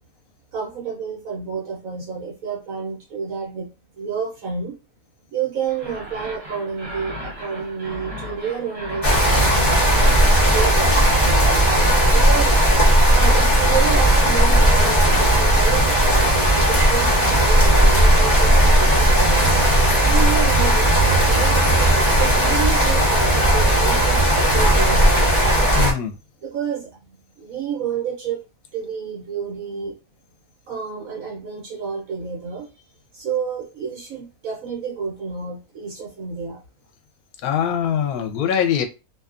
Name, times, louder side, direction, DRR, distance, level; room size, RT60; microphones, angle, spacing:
voice 1, 0.5-3.7 3.9-4.8 5.3-9.8 10.3-12.5 13.1-19.5 20.0-21.6 22.2-25.3 26.4-27.0 27.4-28.4 28.7-29.9 30.7-32.7 33.1-36.6, right 6 dB, 70° right, -1 dB, 1.2 m, -29 dB
sound 1, 5.7-20.1, equal, 45° right, 1.4 m, -37 dB
sound 2, 9.0-25.9, right 1 dB, 15° left, 0.9 m, -16 dB
voice 2, 25.7-26.1 37.4-38.8, left 8 dB, 85° left, 5 dB, 1.1 m, -22 dB
2.8 x 2.3 x 2.4 m, 0.28 s
omnidirectional pair, 1.5 m